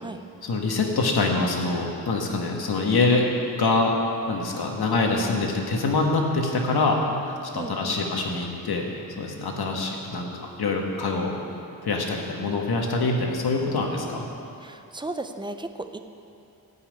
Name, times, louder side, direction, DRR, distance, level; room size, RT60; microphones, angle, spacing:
voice 1, 0.4-3.3 3.6-3.9 4.3-7.0 7.2-8.9 9.2-11.4 11.8-14.3, left 3 dB, 90° left, 1 dB, 1.7 m, -25 dB
voice 2, 7.5-8.0 14.6-16.0, right 2 dB, 15° right, 7 dB, 0.5 m, -35 dB
15.5 x 5.9 x 9.2 m, 2.7 s
wide cardioid pair, 165°, 37 cm